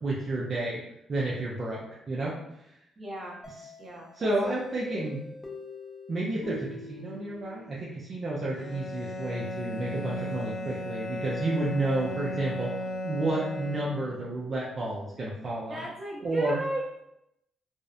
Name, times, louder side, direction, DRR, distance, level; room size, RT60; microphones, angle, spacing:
voice 1, 0.0-0.8 1.1-2.4 4.1-5.2 6.1-12.7 13.0-15.8 16.2-16.6, right 2 dB, 45° right, -5 dB, 0.5 m, -31 dB
voice 2, 3.0-3.4 3.8-4.3 15.7-17.0, right 1 dB, 25° right, -4 dB, 0.8 m, -36 dB
sound 1, 3.4-8.1, left 2 dB, 25° left, 0.5 m, -44 dB
Bowed string instrument, 8.5-14.3, equal, 80° left, 0.7 m, -36 dB
2.6 x 2.0 x 2.4 m, 0.82 s
cardioid pair, 90°, 0 cm